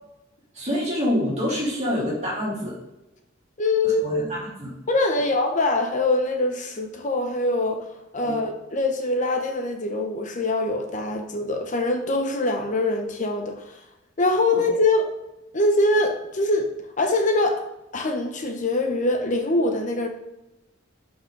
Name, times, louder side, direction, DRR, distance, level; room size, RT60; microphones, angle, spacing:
voice 1, 0.5-2.8 4.0-4.7 8.2-8.4 14.5-14.6, equal, 35° right, -6 dB, 3.3 m, -26 dB
voice 2, 3.6-4.2 4.9-13.8 14.2-15.1 15.5-17.6 17.9-20.1, left 2 dB, 40° left, 5 dB, 0.8 m, -23 dB
11.5 x 5.0 x 3.9 m, 0.96 s
head